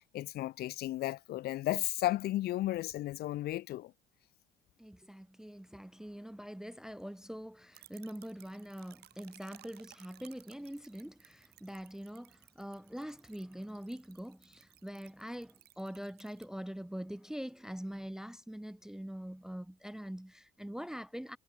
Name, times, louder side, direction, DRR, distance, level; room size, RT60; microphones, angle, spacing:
voice 1, 0.1-3.9, left 15 dB, 70° left, 0.9 m, -34 dB
voice 2, 4.8-21.4, equal, 5° right, 0.5 m, -44 dB
sound 1, 7.7-16.5, right 14 dB, 70° right, 3.5 m, -60 dB
cardioid pair, 110°, 17 cm